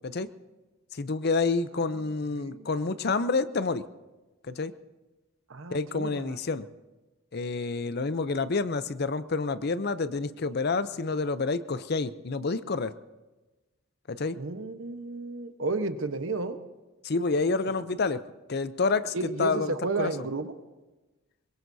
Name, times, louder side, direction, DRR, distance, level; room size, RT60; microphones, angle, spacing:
voice 1, 0.9-3.8 4.5-4.7 5.7-6.7 7.3-12.9 14.1-14.4 17.0-18.2 18.5-20.1, left 4 dB, 50° left, 14 dB, 0.6 m, -28 dB
voice 2, 2.4-2.7 5.5-6.4 14.4-16.6 19.1-20.5, right 3 dB, 70° right, 8 dB, 1.1 m, -32 dB
23.0 x 21.5 x 2.7 m, 1.1 s
head